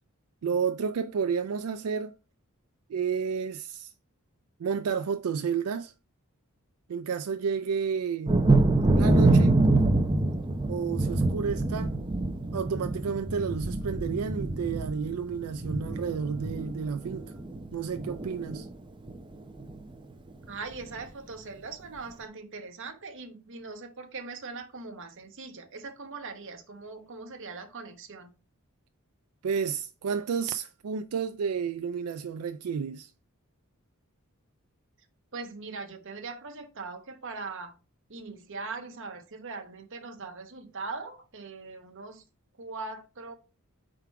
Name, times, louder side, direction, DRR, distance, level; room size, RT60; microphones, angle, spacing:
voice 1, 0.4-2.1 2.9-3.9 4.6-5.9 6.9-8.4 8.9-9.6 10.7-11.9 12.5-17.3 17.7-18.7 29.4-33.1, right 6 dB, 90° right, 0.4 m, -31 dB
Thunder, 8.3-17.7 17.9-18.7 19.1-19.2 19.6-19.8, right 2 dB, 20° right, 0.6 m, -25 dB
voice 2, 20.5-28.3 35.3-37.7 38.1-42.2 42.6-43.3, right 4 dB, 60° right, 1.0 m, -40 dB
4.7 x 3.7 x 5.6 m
head